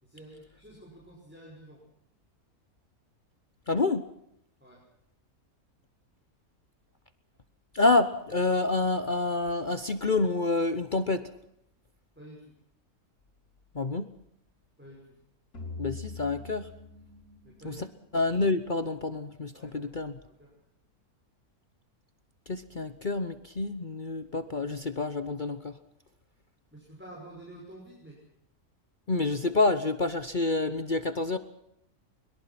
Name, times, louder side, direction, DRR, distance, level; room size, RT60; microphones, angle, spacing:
voice 1, 0.0-1.8 4.6-4.8 12.2-12.5 14.8-15.1 17.4-17.8 19.5-19.9 20.2-20.5 26.7-28.2, right 1 dB, 5° right, -3 dB, 6.0 m, -49 dB
voice 2, 3.7-4.1 7.7-11.3 13.7-14.1 15.8-16.7 17.6-17.7 18.1-20.1 22.5-25.7 29.1-31.4, left 3 dB, 40° left, 11 dB, 1.0 m, -28 dB
sound 1, 15.5-18.8, left 3 dB, 75° left, 4.2 m, -43 dB
23.0 x 22.5 x 5.9 m, 0.75 s
omnidirectional pair, 1.6 m